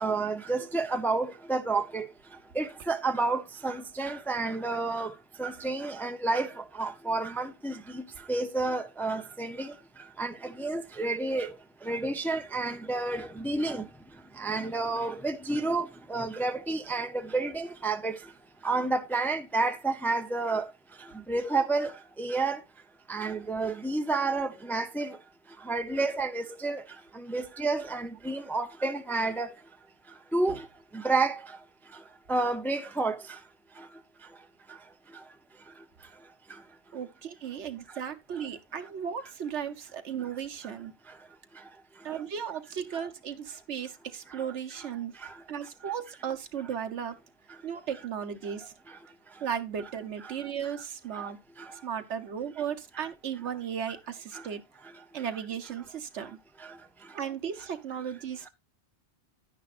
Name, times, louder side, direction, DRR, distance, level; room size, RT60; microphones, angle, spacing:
voice 1, 0.0-2.1 2.6-5.1 5.4-6.5 6.8-7.7 8.3-9.7 10.2-11.5 11.9-13.8 14.4-18.2 18.6-20.6 21.3-21.9 22.2-22.6 23.1-25.2 25.7-26.8 27.3-29.5 30.3-30.6 31.0-31.4 32.3-33.2, right 3 dB, ahead, 0.5 m, -30 dB
voice 2, 36.9-40.9 42.0-45.1 45.5-47.2 47.6-48.7 49.4-51.4 51.8-54.6 55.1-56.4 57.1-58.5, right 8 dB, 85° right, 1.3 m, -35 dB
10.5 x 10.5 x 2.5 m
omnidirectional pair, 1.1 m